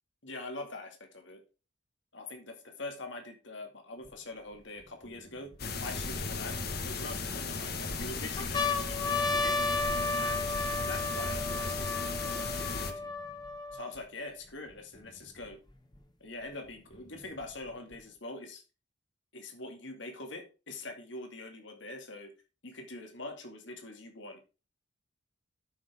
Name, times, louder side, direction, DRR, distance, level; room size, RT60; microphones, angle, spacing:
voice 1, 0.2-1.4 2.1-5.5 5.8-9.6 10.2-13.1 13.7-15.6 16.2-18.6 19.3-22.3 22.6-24.6, left 2 dB, 70° left, 4 dB, 2.4 m, -44 dB
sound 1, 4.1-4.2 4.8-6.1 6.8-7.6 8.0-8.1 8.4-14.0 14.7-14.8 15.0-16.0 16.9-18.0, left 3 dB, 20° left, 1.5 m, -33 dB
sound 2, 5.6-12.9, left 4 dB, 55° left, 1.5 m, -36 dB
12.5 x 6.1 x 3.5 m, 0.31 s
head